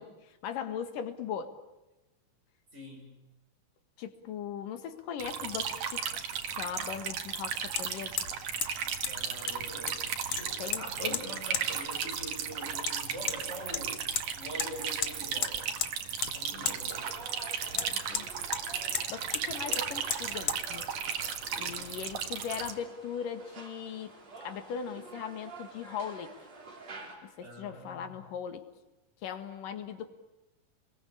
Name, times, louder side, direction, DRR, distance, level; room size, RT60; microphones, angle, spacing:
voice 1, 0.0-1.5 4.0-6.1 6.5-8.2 10.6-11.2 16.5-16.8 17.7-18.3 19.1-20.9 21.5-24.1 24.4-26.4 27.2-28.7 29.2-30.1, left 8 dB, 90° left, 9 dB, 3.3 m, -39 dB
voice 2, 2.7-3.1 9.0-14.0 14.3-15.7 16.3-17.1 21.5-21.9 27.4-28.1, equal, 20° right, 0 dB, 8.1 m, -44 dB
sound 1, 5.2-22.7, right 7 dB, 85° right, 3.5 m, -35 dB
Hammer, 5.8-5.9 7.8-7.9 8.2-8.4 8.6-8.7 9.0-9.1 9.5-10.0 10.3-10.8 11.1-11.2 11.5-11.7 12.9-13.0 13.3-13.4 13.7-14.3 14.6-14.7 15.0-15.1 15.4-15.9 16.2-16.4 16.7-16.8 17.8-18.6 19.0-19.1 19.3-19.4 19.7-19.8 20.1-20.2 20.5-20.6, left 10 dB, 60° left, 1.8 m, -33 dB
sound 2, 16.9-27.2, right 3 dB, 55° right, 5.3 m, -49 dB
29.5 x 22.0 x 8.5 m, 1.0 s
omnidirectional pair, 3.7 m